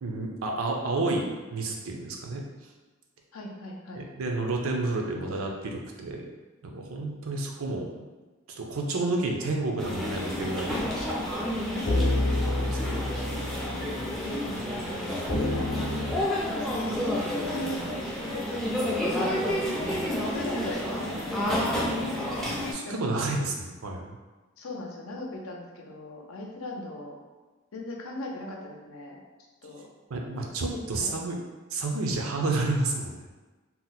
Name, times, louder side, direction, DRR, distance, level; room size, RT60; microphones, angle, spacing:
voice 1, 0.0-2.4 4.0-6.3 6.6-8.0 8.5-10.8 12.6-13.0 22.4-24.1 30.1-31.4 31.7-33.3, right 2 dB, 85° right, 1 dB, 0.5 m, -30 dB
voice 2, 3.3-4.0 11.7-12.5 14.2-16.0 16.4-17.8 18.2-18.6 19.1-19.9 20.2-21.7 22.8-23.3 24.6-27.2 27.7-29.2 29.6-29.9 30.7-31.2, left 2 dB, 85° left, 0 dB, 0.6 m, -39 dB
sound 1, 9.8-22.7, equal, ahead, 0.3 m, -30 dB
sound 2, 10.5-10.6 11.1-11.2 11.8-14.6 15.3-16.1, left 1 dB, 45° left, 0.7 m, -28 dB
2.8 x 2.1 x 3.9 m, 1.2 s
head